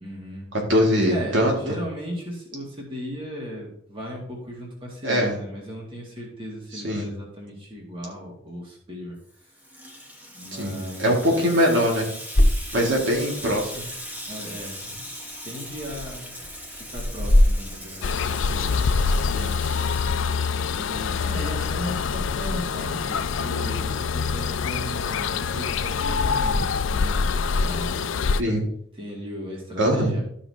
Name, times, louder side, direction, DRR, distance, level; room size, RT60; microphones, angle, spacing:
voice 1, 0.0-0.5 1.1-9.2 10.3-11.5 14.3-15.1 15.4-16.4 16.7-18.8 20.7-27.3 27.6-28.2 29.0-30.2, equal, 25° right, -3 dB, 2.1 m, -36 dB
voice 2, 0.7-1.5 5.0-5.4 6.7-7.0 10.6-12.0 12.7-13.8 19.3-19.5 28.4-28.6 29.8-30.1, equal, 70° right, -1 dB, 2.1 m, -22 dB
Water tap faucet / Sink (filling or washing), 9.3-20.7, equal, 10° right, 1.0 m, -39 dB
sound 1, 12.3-26.6, left 1 dB, 55° left, 1.1 m, -29 dB
sound 2, 18.0-28.4, left 5 dB, 80° left, 0.4 m, -25 dB
13.0 x 5.7 x 2.8 m, 0.67 s
head